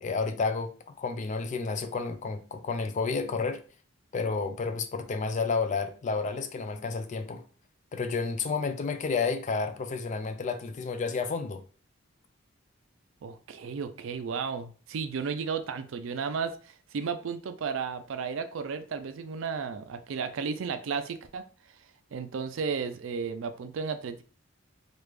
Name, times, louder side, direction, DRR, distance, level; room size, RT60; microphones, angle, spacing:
voice 1, 0.0-3.6 4.1-7.4 7.9-11.6, left 4 dB, 35° left, 0.3 m, -31 dB
voice 2, 13.2-21.4 22.1-24.2, right 5 dB, 65° right, 0.4 m, -33 dB
3.3 x 2.4 x 3.2 m
head